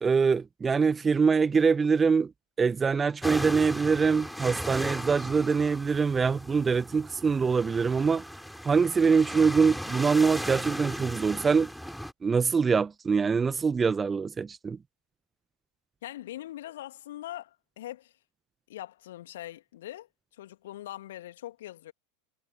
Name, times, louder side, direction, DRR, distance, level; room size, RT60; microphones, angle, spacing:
voice 1, 0.0-2.3 2.6-8.2 8.6-11.7 12.2-14.8, right 5 dB, 20° right, 1.3 m, -24 dB
sound 1, 3.2-12.1, equal, ahead, 6.2 m, -37 dB
voice 2, 16.0-18.2 18.7-21.9, left 14 dB, 60° left, 2.6 m, -42 dB
figure-of-eight pair, 85°, 0 cm